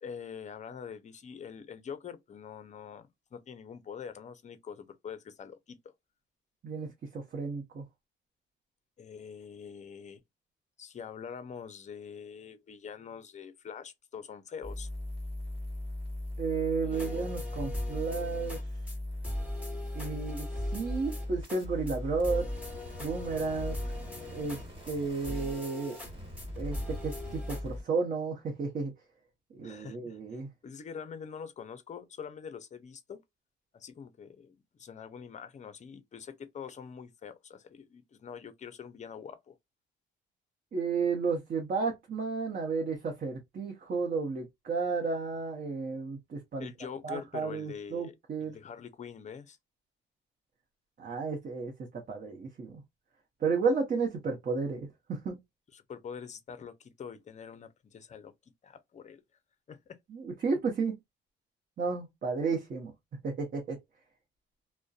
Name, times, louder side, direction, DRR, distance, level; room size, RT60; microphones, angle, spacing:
voice 1, 0.0-5.9 9.0-10.2 10.8-14.9 16.8-17.2 29.6-30.2 30.6-33.2 33.7-39.5 46.6-48.1 48.4-49.6 55.7-58.3 58.6-59.2 59.7-60.0, left 7 dB, 35° left, 0.5 m, -44 dB
voice 2, 6.6-7.8 16.4-18.6 19.9-22.5 23.0-23.9 24.3-24.6 24.9-26.0 26.6-28.9 29.5-30.5 40.7-46.7 47.0-48.6 51.0-52.8 53.4-55.4 60.1-61.0 61.8-62.9 63.2-63.8, right 4 dB, 45° right, 0.8 m, -32 dB
sound 1, 14.6-27.8, left 1 dB, 25° right, 1.6 m, -39 dB
sound 2, 16.9-18.6 18.9-19.0 19.2-21.6 21.9-22.0 22.2-25.0 25.2-26.1 26.4-27.6, left 1 dB, 5° right, 1.3 m, -39 dB
2.5 x 2.1 x 2.3 m
cardioid pair, 90°, 20 cm